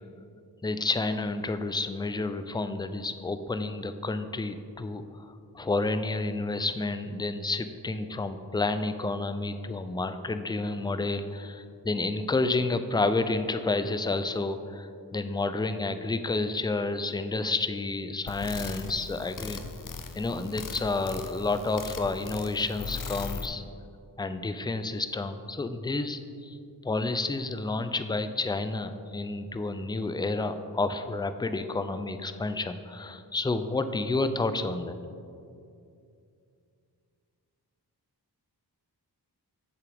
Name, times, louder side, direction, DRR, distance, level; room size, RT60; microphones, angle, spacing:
voice 1, 0.6-19.6 20.1-23.6 24.2-26.6 26.8-35.0, left 3 dB, 10° left, 10 dB, 0.4 m, -30 dB
sound 1, 18.3-23.5, left 4 dB, 50° left, 0.6 m, -39 dB
7.3 x 7.0 x 3.5 m, 2.5 s
cardioid pair, 45°, 41 cm